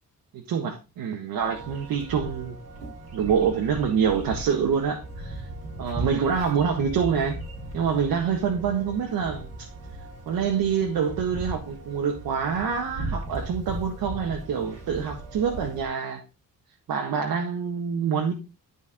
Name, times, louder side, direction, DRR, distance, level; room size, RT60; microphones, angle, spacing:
voice 1, 0.3-2.6 3.1-5.5 5.8-7.4 7.7-9.7 10.3-16.2 16.9-18.3, right 7 dB, 90° right, 1.5 m, -26 dB
sound 1, 1.4-15.8, right 2 dB, 45° right, 5.4 m, -38 dB
12.5 x 4.6 x 3.6 m
cardioid pair, 115°, 34 cm